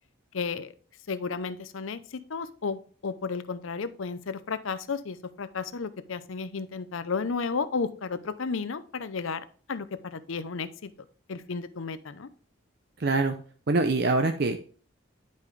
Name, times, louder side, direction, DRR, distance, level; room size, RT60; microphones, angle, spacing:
voice 1, 0.3-0.7 1.1-10.9 11.3-12.3, left 5 dB, 70° left, 13 dB, 0.6 m, -33 dB
voice 2, 13.0-13.4 13.7-14.6, right 3 dB, 50° right, 6 dB, 0.6 m, -24 dB
10.5 x 5.3 x 3.2 m, 0.43 s
head